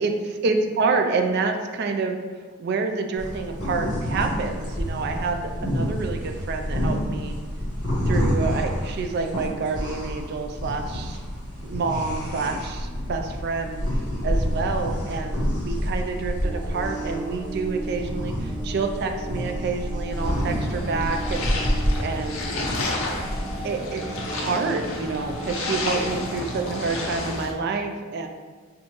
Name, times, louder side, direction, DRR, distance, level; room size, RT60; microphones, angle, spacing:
voice 1, 0.0-2.2 2.6-7.4 8.1-11.2 11.6-13.8 14.2-21.5 22.0-22.6 23.6-24.0 24.3-28.3, right 4 dB, 50° right, 5 dB, 0.3 m, -28 dB
sound 1, 3.2-22.9, equal, 20° right, 1.2 m, -28 dB
sound 2, 16.4-27.3, right 2 dB, 15° left, 0.7 m, -37 dB
sound 3, 20.1-27.5, left 2 dB, 70° left, 0.6 m, -31 dB
4.3 x 2.6 x 2.9 m, 1.5 s
head